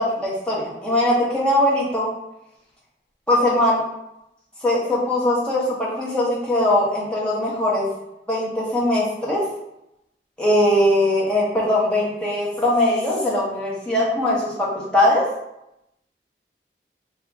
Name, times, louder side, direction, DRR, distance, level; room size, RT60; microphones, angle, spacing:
voice 1, 0.0-2.1 3.3-3.8 4.6-7.9 8.3-9.4 10.4-15.3, left 1 dB, 5° left, -6 dB, 0.7 m, -20 dB
2.8 x 2.4 x 3.4 m, 0.85 s
head